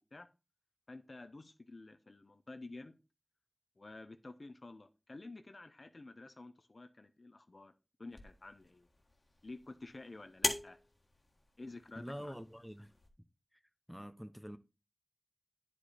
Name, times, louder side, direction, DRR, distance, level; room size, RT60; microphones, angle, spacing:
voice 1, 0.9-3.0 3.8-7.7 8.0-8.9 9.4-10.8 11.6-12.3, left 2 dB, 65° left, 0.8 m, -51 dB
sound 1, 8.1-13.1, left 1 dB, 50° left, 1.6 m, -43 dB
voice 2, 12.0-12.9 13.9-14.6, equal, 5° right, 0.8 m, -46 dB
9.9 x 5.0 x 4.3 m
wide cardioid pair, 60°, 0 cm